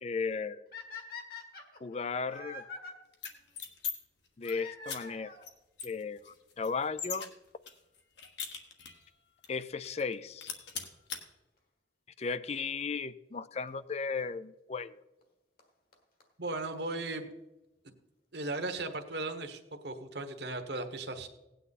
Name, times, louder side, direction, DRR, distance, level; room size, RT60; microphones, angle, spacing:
voice 1, 0.0-0.6 1.8-2.7 4.4-5.3 5.8-7.3 9.5-10.5 12.2-15.0, left 5 dB, 35° left, 16 dB, 0.4 m, -35 dB
sound 1, 0.7-2.9 4.4-5.5 6.4-6.5 7.2-7.3 7.5-7.6 9.5-9.7 12.5-12.6 13.7-13.8 15.2-15.3 15.6-15.7 15.9-16.0 16.2-16.3 16.5-16.6 16.7-16.8 17.1-17.2, left 4 dB, 50° left, 1.6 m, -45 dB
sound 2, 3.1-3.9 4.3-4.5 4.9-5.0 5.4-5.5 5.8-7.3 7.7-9.1 9.4-9.5 9.8-10.1 10.4-11.2, left 6 dB, 65° left, 1.4 m, -39 dB
voice 2, 16.4-17.3 18.3-21.3, right 2 dB, 55° right, 7 dB, 1.2 m, -37 dB
17.0 x 9.3 x 4.1 m, 0.99 s
head